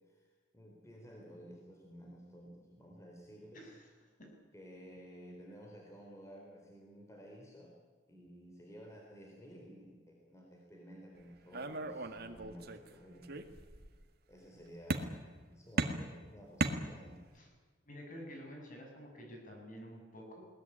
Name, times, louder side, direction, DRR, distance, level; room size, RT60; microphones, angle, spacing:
voice 1, 0.5-3.7 4.5-7.8 8.1-13.3 14.3-15.2 15.5-17.2, equal, 15° left, 0 dB, 4.0 m, -53 dB
voice 2, 3.5-3.9 4.2-4.3 17.3-17.5 17.9-20.4, equal, 45° left, 1 dB, 7.6 m, -50 dB
sound 1, 11.5-12.9 13.2-14.0 14.9-15.4 15.8-17.4, right 2 dB, 55° right, 1.9 m, -37 dB
21.5 x 19.5 x 10.0 m, 1.5 s
head